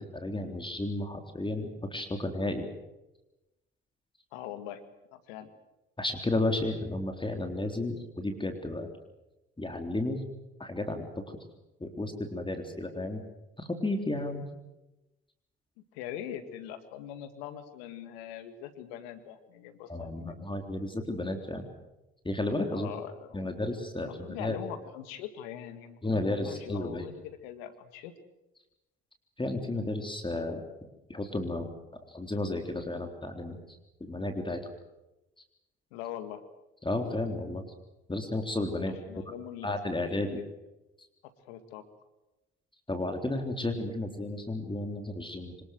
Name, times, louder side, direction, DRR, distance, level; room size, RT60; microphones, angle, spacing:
voice 1, 0.1-2.7 6.0-8.9 9.6-10.2 10.6-11.0 11.8-13.2 13.6-14.5 19.9-21.7 22.2-22.9 23.3-24.6 26.0-27.1 29.4-30.6 31.1-31.7 32.1-34.6 36.8-37.6 38.1-39.0 39.6-40.4 42.9-45.5, left 2 dB, 15° left, 5 dB, 3.7 m, -32 dB
voice 2, 4.3-4.8 5.1-5.5 15.9-20.4 22.7-23.5 24.1-28.1 35.9-36.4 38.9-40.5 41.5-41.8, left 10 dB, 80° left, 10 dB, 2.1 m, -42 dB
25.5 x 20.5 x 7.8 m, 0.98 s
hypercardioid pair, 55°, 30 cm